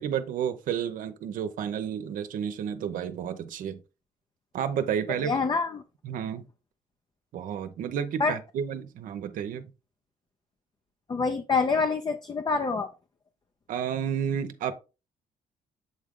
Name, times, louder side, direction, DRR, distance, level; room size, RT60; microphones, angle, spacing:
voice 1, 0.0-3.8 4.5-5.4 6.0-6.5 7.3-9.7 13.7-14.7, right 8 dB, 75° right, 0.8 m, -31 dB
voice 2, 5.2-5.8 8.2-8.4 11.1-12.9, left 4 dB, 30° left, 0.7 m, -26 dB
7.9 x 3.7 x 3.7 m
cardioid pair, 85°, 14 cm